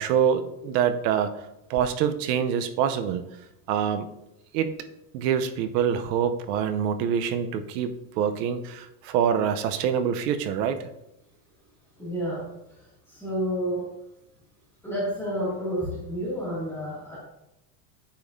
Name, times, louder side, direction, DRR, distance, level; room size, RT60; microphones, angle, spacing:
voice 1, 0.0-1.4 1.7-3.2 3.7-4.1 4.5-4.7 5.1-10.9, right 8 dB, 75° right, 10 dB, 0.8 m, -25 dB
voice 2, 12.0-13.9 14.8-17.2, equal, 5° left, -11 dB, 2.1 m, -30 dB
8.8 x 5.2 x 2.6 m, 0.86 s
cardioid pair, 180°, 49 cm